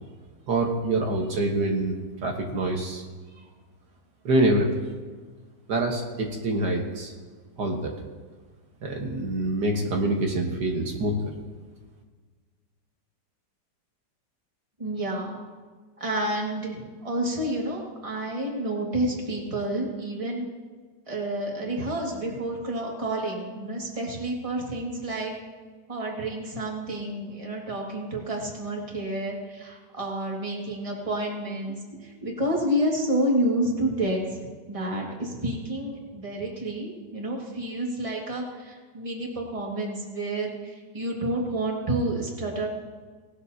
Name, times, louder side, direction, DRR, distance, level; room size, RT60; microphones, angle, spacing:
voice 1, 0.5-3.0 4.3-4.8 5.7-7.1 7.6-7.9 8.8-11.3, right 2 dB, 70° right, 1 dB, 1.9 m, -26 dB
voice 2, 14.8-15.4 16.0-20.5 21.1-25.3 25.9-34.4 34.7-42.7, right 1 dB, 20° right, -1 dB, 1.9 m, -29 dB
18.5 x 11.5 x 2.8 m, 1.4 s
omnidirectional pair, 1.9 m